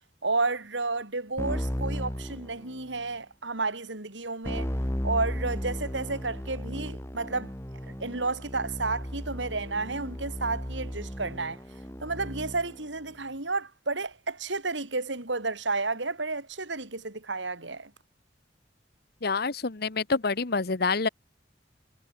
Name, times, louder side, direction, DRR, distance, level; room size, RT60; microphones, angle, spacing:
voice 1, 0.2-4.7 5.0-7.5 8.0-11.6 12.0-17.9, right 3 dB, 85° right, 4.0 m, -31 dB
Keyboard (musical), 1.4-3.1 4.4-12.8, equal, 15° left, 3.8 m, -35 dB
voice 2, 19.2-21.1, left 4 dB, 60° left, 1.1 m, -27 dB
head